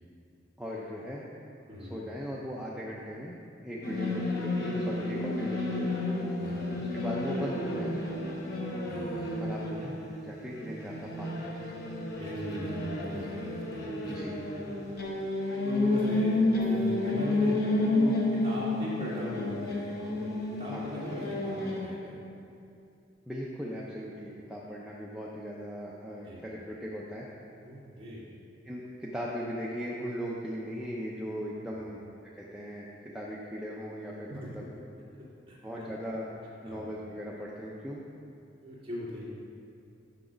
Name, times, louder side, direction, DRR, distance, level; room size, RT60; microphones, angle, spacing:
voice 1, 0.6-1.3 1.8-3.4 3.6-5.9 6.8-8.0 9.4-11.6 14.1-14.4 20.7-20.9 23.3-27.3 28.6-34.6 35.6-36.3 36.6-38.0, equal, 5° right, -5 dB, 0.5 m, -38 dB
voice 2, 1.7-2.0 6.4-6.7 8.9-9.4 11.9-14.4 15.6-22.2 26.3-26.4 27.6-28.2 34.3-34.5 35.5-35.9 36.6-36.8 38.6-39.2, equal, 30° right, -7 dB, 2.0 m, -39 dB
sound 1, 3.8-21.8, left 2 dB, 60° left, 1.1 m, -31 dB
6.8 x 6.2 x 5.0 m, 2.6 s
head